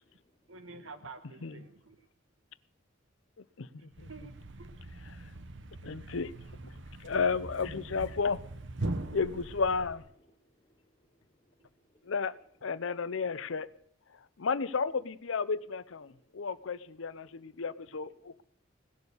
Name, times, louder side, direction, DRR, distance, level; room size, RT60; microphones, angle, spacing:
voice 1, 0.5-2.0 4.1-4.3 4.6-4.7 6.0-6.1 13.1-13.2, right 3 dB, 85° right, 8 dB, 1.4 m, -48 dB
Thump thud, 3.9-10.1, right 2 dB, 65° right, 1.0 m, -41 dB
voice 2, 5.8-6.3 7.0-8.4 9.1-10.0 12.1-12.3 12.6-13.7 14.4-18.4, left 5 dB, 75° left, 17 dB, 0.6 m, -32 dB
voice 3, 10.3-12.1 16.1-16.5 17.3-17.6 18.3-18.4, equal, 25° left, 1 dB, 1.0 m, -71 dB
18.0 x 7.0 x 8.1 m, 0.64 s
head